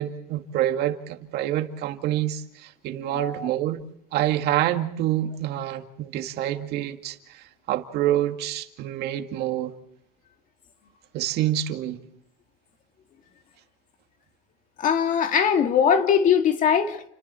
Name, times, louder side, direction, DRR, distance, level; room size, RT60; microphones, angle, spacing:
voice 1, 0.0-3.8 4.1-9.7 11.1-12.0, right 12 dB, 55° right, 2.1 m, -27 dB
voice 2, 3.1-3.5 14.8-17.0, left 7 dB, 40° left, 2.3 m, -21 dB
29.5 x 26.0 x 4.4 m
cardioid pair, 130°, 20 cm